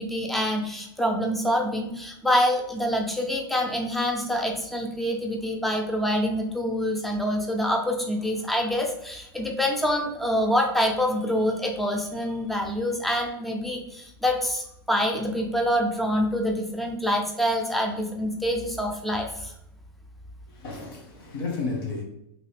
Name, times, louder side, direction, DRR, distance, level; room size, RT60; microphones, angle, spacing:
voice 1, 0.0-19.5, equal, ahead, 0.3 m, -26 dB
voice 2, 20.5-22.0, left 3 dB, 70° left, 1.2 m, -32 dB
3.2 x 2.7 x 3.3 m
supercardioid pair, 165°, 12 cm